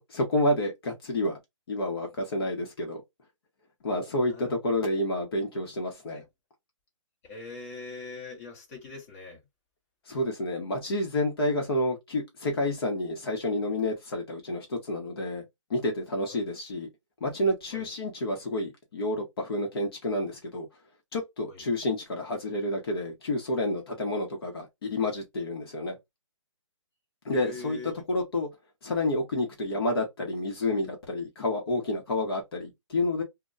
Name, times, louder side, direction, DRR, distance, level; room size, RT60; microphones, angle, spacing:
voice 1, 0.1-1.4 1.7-3.0 3.8-6.2 10.1-15.4 15.7-16.9 17.2-20.7 21.1-26.0 27.2-28.5 28.8-33.2, left 1 dB, 50° left, 0.9 m, -29 dB
voice 2, 7.2-9.4 16.3-16.4 17.7-17.9 21.5-21.6 27.3-27.9, left 3 dB, 25° left, 1.0 m, -42 dB
2.2 x 2.1 x 3.7 m
hypercardioid pair, 165°, 17 cm